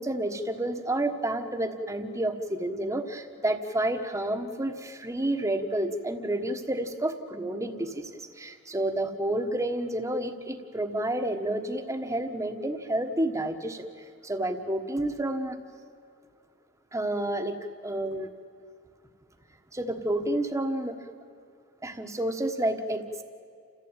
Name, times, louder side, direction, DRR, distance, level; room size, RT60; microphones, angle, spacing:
voice 1, 0.0-13.9 14.2-15.6 16.9-17.6 17.8-18.3 19.7-21.0 21.8-23.2, right 1 dB, 15° right, 6 dB, 1.3 m, -30 dB
29.0 x 15.0 x 9.0 m, 2.3 s
head